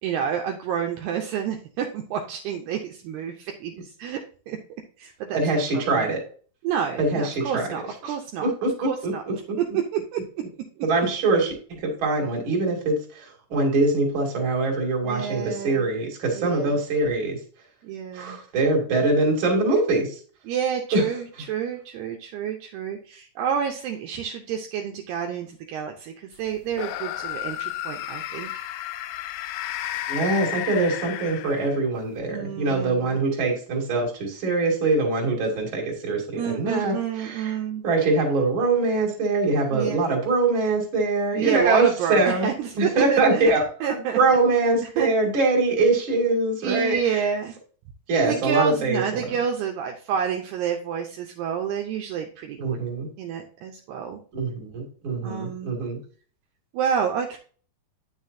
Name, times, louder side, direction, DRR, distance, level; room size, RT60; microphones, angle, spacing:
voice 1, 0.0-4.2 4.5-4.6 5.0-5.4 5.7-6.1 6.6-8.5 8.9-9.2 9.7-10.2 15.0-15.9 16.3-16.8 17.8-18.4 20.4-28.6 32.3-33.2 36.4-37.8 39.7-40.0 41.3-43.5 43.8-44.4 44.8-45.1 46.6-47.5 48.2-52.8 53.2-54.2 55.2-55.7 56.7-57.4, right 8 dB, 80° right, 3 dB, 2.5 m, -29 dB
voice 2, 5.3-6.2 7.0-7.7 8.0-8.1 8.4-9.1 9.5-9.6 10.8-17.4 18.1-20.1 20.9-21.0 30.1-37.6 37.8-42.5 42.8-43.6 43.9-47.0 48.1-49.2 52.6-53.1 54.3-56.0, right 3 dB, 35° right, -1 dB, 2.4 m, -23 dB
sound 1, 26.7-32.0, left 14 dB, 80° left, 2.7 m, -32 dB
9.4 x 6.4 x 2.7 m, 0.42 s
omnidirectional pair, 5.1 m